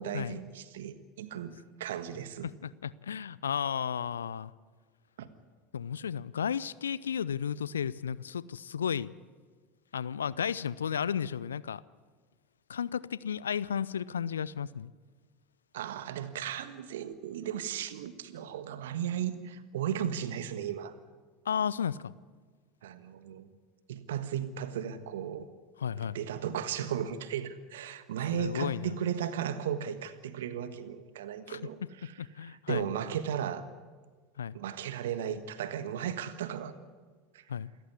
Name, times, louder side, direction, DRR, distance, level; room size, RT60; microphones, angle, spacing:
voice 1, 0.0-1.5 1.8-2.5 5.2-5.3 15.7-20.9 22.8-23.5 23.9-25.5 25.9-32.1 32.4-33.6 34.5-36.7 37.3-37.4, right 9 dB, 65° right, 12 dB, 1.5 m, -35 dB
voice 2, 2.4-4.5 5.7-9.1 9.9-11.8 12.7-14.9 21.5-22.1 25.8-26.2 28.3-28.9 31.5-31.6 32.2-32.9 34.4-34.6 37.5-37.7, left 8 dB, 75° left, 20 dB, 0.6 m, -33 dB
27.5 x 14.5 x 9.5 m, 1.5 s
figure-of-eight pair, 75°, 0 cm